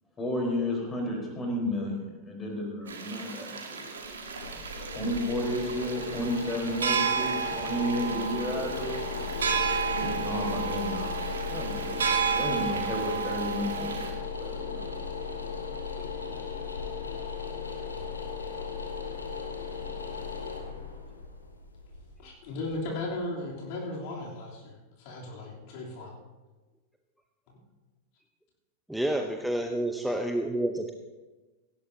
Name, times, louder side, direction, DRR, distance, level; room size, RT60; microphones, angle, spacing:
voice 1, 0.2-3.9 4.9-9.1 9.4-9.5 9.9-11.2 11.4-14.0 14.4-15.0, left 1 dB, 20° left, 0 dB, 4.3 m, -32 dB
sound 1, 2.9-14.1, right 6 dB, 70° right, 1.9 m, -32 dB
sound 2, 4.0-22.9, left 4 dB, 80° left, 1.6 m, -36 dB
voice 2, 22.2-26.1 27.5-27.6, left 2 dB, 45° left, -3 dB, 3.3 m, -36 dB
voice 3, 28.9-30.9, right 1 dB, ahead, 4 dB, 0.8 m, -29 dB
17.5 x 15.5 x 2.8 m, 1.2 s
figure-of-eight pair, 90°, 0 cm